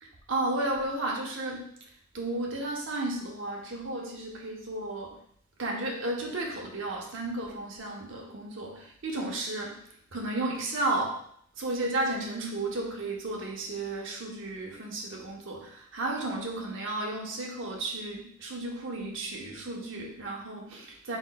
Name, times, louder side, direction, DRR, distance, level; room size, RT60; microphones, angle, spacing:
voice 1, 0.3-1.7 2.1-5.2 5.6-9.8 10.1-11.2 11.6-21.2, right 2 dB, 65° right, 0 dB, 0.9 m, -33 dB
4.4 x 4.3 x 2.2 m, 0.66 s
head